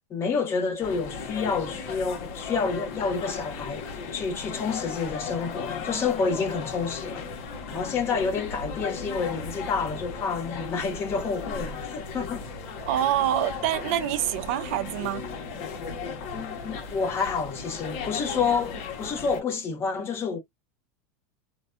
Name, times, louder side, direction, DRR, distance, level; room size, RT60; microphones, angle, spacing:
voice 1, 0.1-7.3 7.7-12.4 16.3-20.4, left 5 dB, 35° left, 1.2 m, -29 dB
sound 1, 0.8-19.4, left 5 dB, 65° left, 1.0 m, -36 dB
voice 2, 12.9-15.2, right 12 dB, 70° right, 0.5 m, -26 dB
2.5 x 2.2 x 2.5 m
supercardioid pair, 110°, 8 cm